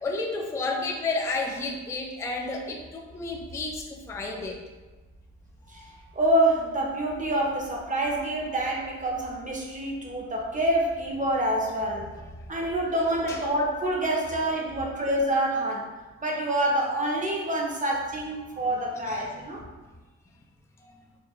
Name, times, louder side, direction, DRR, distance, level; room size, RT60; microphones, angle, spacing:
voice 1, 0.0-4.6 5.7-6.0 13.3-13.4 19.1-19.5, left 3 dB, 10° left, 1 dB, 0.3 m, -32 dB
voice 2, 6.1-12.1 12.5-15.9 16.2-19.7, right 1 dB, 25° right, -1 dB, 0.7 m, -27 dB
3.7 x 2.2 x 3.0 m, 1.3 s
cardioid pair, 90°, 30 cm